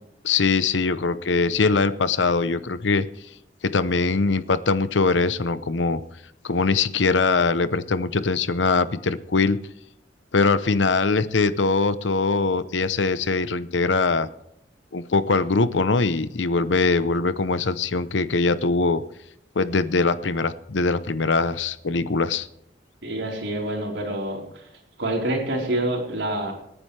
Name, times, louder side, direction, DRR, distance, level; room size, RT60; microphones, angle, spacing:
voice 1, 0.2-3.1 3.6-6.0 6.4-9.6 10.3-14.3 14.9-19.0 19.6-22.5, left 4 dB, 85° left, 14 dB, 0.8 m, -22 dB
voice 2, 23.0-24.6 25.0-26.5, right 1 dB, 85° right, 0 dB, 4.3 m, -27 dB
26.0 x 9.9 x 3.4 m, 0.77 s
head